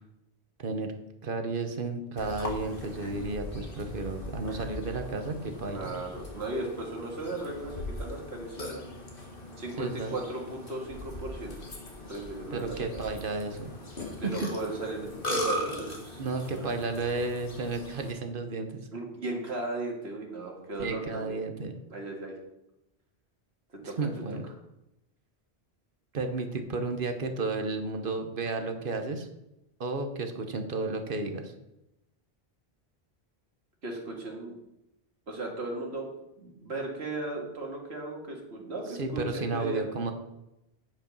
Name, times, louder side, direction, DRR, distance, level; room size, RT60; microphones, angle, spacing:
voice 1, 0.6-0.9 1.2-5.9 9.8-10.2 12.5-13.7 14.4-14.5 16.2-18.9 20.8-21.7 23.8-24.4 26.1-29.3 29.8-31.5 38.9-40.1, right 3 dB, 55° right, 6 dB, 1.1 m, -32 dB
Burping eructation, 2.2-18.1, left 1 dB, 55° left, 1.7 m, -39 dB
voice 2, 5.7-8.8 9.6-11.5 12.1-12.8 14.2-16.2 16.5-16.7 18.9-21.4 21.9-22.4 23.7-23.9 33.8-34.5 35.3-36.1 36.4-39.8, right 2 dB, 80° right, 0 dB, 2.1 m, -36 dB
9.4 x 5.2 x 5.3 m, 0.89 s
omnidirectional pair, 1.1 m